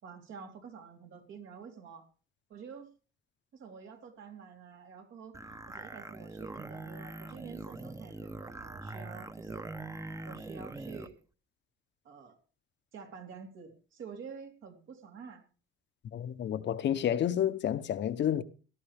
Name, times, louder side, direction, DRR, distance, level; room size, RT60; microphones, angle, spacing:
voice 1, 0.0-2.1 2.5-2.9 3.5-5.4 5.7-9.7 10.2-11.1 12.0-12.4 12.9-15.4, right 6 dB, 75° right, 3.5 m, -48 dB
sound 1, 5.3-11.1, right 2 dB, 15° right, 0.8 m, -43 dB
voice 2, 16.1-18.4, left 10 dB, 65° left, 0.9 m, -30 dB
18.0 x 11.5 x 3.5 m
cardioid pair, 90°, 20 cm